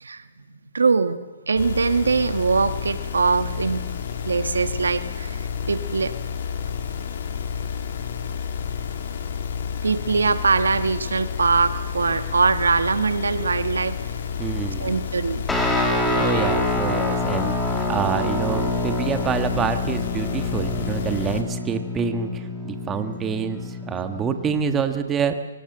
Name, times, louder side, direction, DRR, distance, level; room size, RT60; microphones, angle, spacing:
voice 1, 0.7-1.2 1.5-3.9 4.2-6.1 9.8-14.0 14.8-15.4 16.1-16.3, right 4 dB, 85° right, 11 dB, 1.3 m, -22 dB
sound 1, 1.6-21.4, left 7 dB, 60° left, 2.9 m, -30 dB
voice 2, 14.4-15.1 16.2-25.4, right 6 dB, 15° right, 8 dB, 1.3 m, -27 dB
Guitar, 15.5-24.6, left 1 dB, 5° left, 2.7 m, -26 dB
23.0 x 18.0 x 7.9 m, 1.3 s
hypercardioid pair, 145°, 0 cm